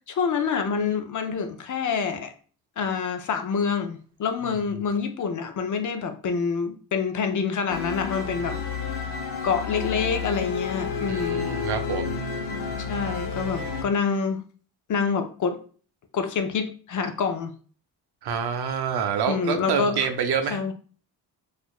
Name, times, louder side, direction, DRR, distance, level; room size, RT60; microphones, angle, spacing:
voice 1, 0.1-2.3 2.8-8.6 9.4-11.5 12.9-14.4 14.9-15.6 16.1-17.5 19.3-20.0 20.5-20.7, left 5 dB, 45° left, 8 dB, 0.5 m, -27 dB
sound 1, 7.7-13.8, left 5 dB, 65° left, 0.9 m, -30 dB
voice 2, 11.1-12.1 18.2-20.6, right 6 dB, 65° right, 7 dB, 0.6 m, -27 dB
4.4 x 2.5 x 2.3 m, 0.42 s
cardioid pair, 100°, 41 cm